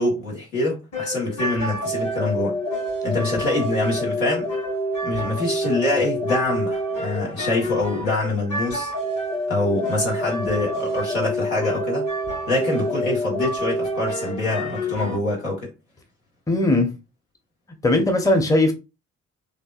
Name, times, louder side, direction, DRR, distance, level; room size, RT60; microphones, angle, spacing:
voice 1, 0.0-2.5 3.0-4.5 5.0-8.9 9.5-12.0 12.5-15.7, left 2 dB, 75° left, 1.2 m, -25 dB
sound 1, 0.9-15.2, equal, 50° left, 2.0 m, -27 dB
voice 2, 16.5-17.0 17.8-18.7, left 2 dB, 10° left, 0.7 m, -19 dB
3.3 x 2.6 x 2.4 m
figure-of-eight pair, 40°, 39 cm